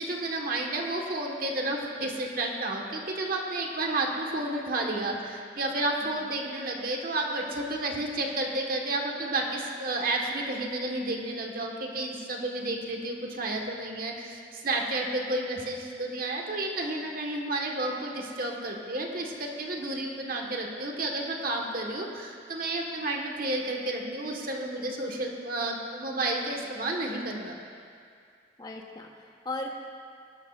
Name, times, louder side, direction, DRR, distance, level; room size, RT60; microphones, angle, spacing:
voice 1, 0.0-27.6, right 2 dB, 50° right, 0 dB, 1.4 m, -31 dB
voice 2, 28.6-29.7, left 2 dB, 20° left, 1 dB, 1.0 m, -38 dB
19.0 x 11.5 x 2.5 m, 2.3 s
head